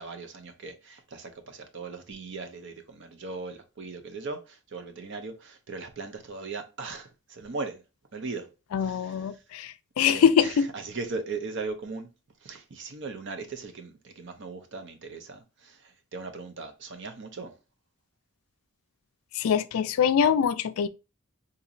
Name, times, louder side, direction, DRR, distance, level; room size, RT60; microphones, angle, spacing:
voice 1, 0.0-7.8 8.1-8.5 8.8-9.4 10.0-12.1 12.4-17.5, right 4 dB, 55° right, 0.7 m, -38 dB
voice 2, 8.7-10.7 19.3-20.9, left 7 dB, 75° left, 0.3 m, -23 dB
3.9 x 2.9 x 2.5 m
head